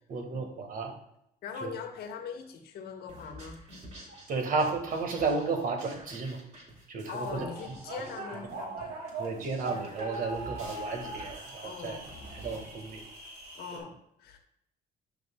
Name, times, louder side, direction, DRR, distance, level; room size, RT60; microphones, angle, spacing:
voice 1, 0.1-1.0 1.6-1.7 4.3-6.4 6.9-7.4 9.2-12.0 12.4-13.0 13.7-13.8, right 4 dB, 55° right, 4 dB, 1.8 m, -33 dB
voice 2, 1.4-3.6 7.1-9.0 11.6-12.1 13.5-14.4, left 5 dB, 70° left, 5 dB, 1.3 m, -41 dB
sound 1, 3.1-12.7, right 1 dB, 40° right, 2.3 m, -49 dB
sound 2, 7.4-13.8, right 2 dB, 70° right, 2.4 m, -41 dB
11.0 x 6.4 x 2.3 m, 0.76 s
cardioid pair, 110°, 17 cm